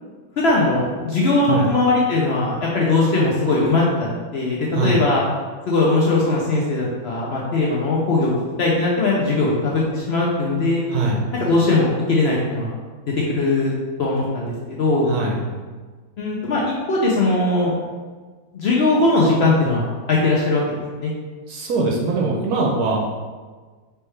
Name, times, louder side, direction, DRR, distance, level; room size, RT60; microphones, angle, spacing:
voice 1, 0.4-4.1 4.3-4.6 4.8-5.2 5.7-8.3 8.6-10.8 11.3-12.7 13.3-13.7 14.0-15.1 16.2-16.6 16.9-17.7 18.5-20.6 21.0-21.1, left 2 dB, 70° left, -4 dB, 0.6 m, -19 dB
voice 2, 10.9-11.3 15.1-15.4 21.5-23.0, right 3 dB, 70° right, -1 dB, 1.1 m, -22 dB
4.4 x 3.3 x 3.2 m, 1.4 s
omnidirectional pair, 1.8 m